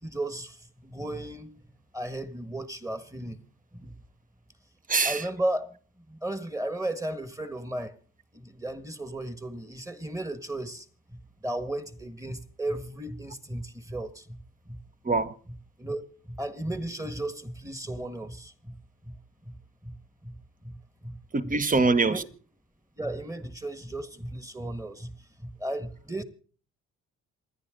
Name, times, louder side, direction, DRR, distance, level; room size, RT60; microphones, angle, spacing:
voice 1, 0.0-3.4 3.7-4.0 5.0-5.8 6.1-8.0 8.3-15.2 15.8-19.1 19.4-21.5 22.0-22.3 23.0-26.2, right 1 dB, 10° right, 1.7 m, -35 dB
voice 2, 4.9-5.3 15.0-15.4 21.3-22.2, right 3 dB, 25° right, 1.1 m, -24 dB
27.0 x 10.0 x 3.8 m
cardioid pair, 90°, 30 cm